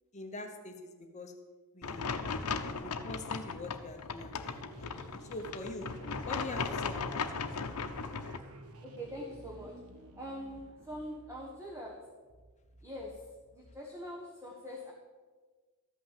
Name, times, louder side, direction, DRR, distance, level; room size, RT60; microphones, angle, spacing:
voice 1, 0.1-1.4 1.7-2.2 2.5-4.9 5.1-5.9 6.3-7.4, left 2 dB, 30° left, 5 dB, 0.9 m, -44 dB
sound 1, 1.8-8.4, left 5 dB, 80° left, 0.8 m, -37 dB
sound 2, 4.4-13.6, right 1 dB, 70° right, 1.0 m, -53 dB
voice 2, 8.8-9.8 10.2-12.0 12.8-14.9, equal, 15° right, -3 dB, 1.5 m, -43 dB
13.5 x 5.9 x 7.5 m, 1.4 s
head